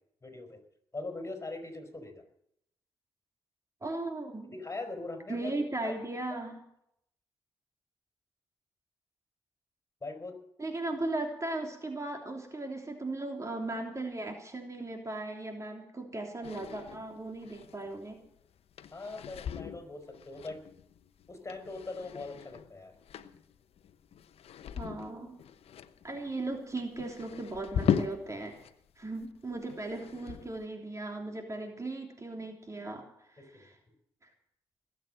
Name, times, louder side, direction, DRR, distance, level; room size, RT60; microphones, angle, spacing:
voice 1, 0.2-0.6 0.9-2.2 4.4-5.5 5.8-5.9 10.0-10.4 18.9-20.6 21.3-22.9 33.4-33.7, left 2 dB, 25° left, 5 dB, 5.1 m, -41 dB
voice 2, 3.8-4.5 5.3-6.5 10.6-18.2 24.8-25.4 26.0-28.5 29.0-33.0 33.3-33.7 34.2-34.3, right 2 dB, 30° right, 2 dB, 3.3 m, -37 dB
sound 1, 16.4-28.7 29.0-30.6, left 8 dB, 70° left, 1.0 m, -39 dB
19.5 x 8.5 x 7.6 m, 0.74 s
supercardioid pair, 50°, 11 cm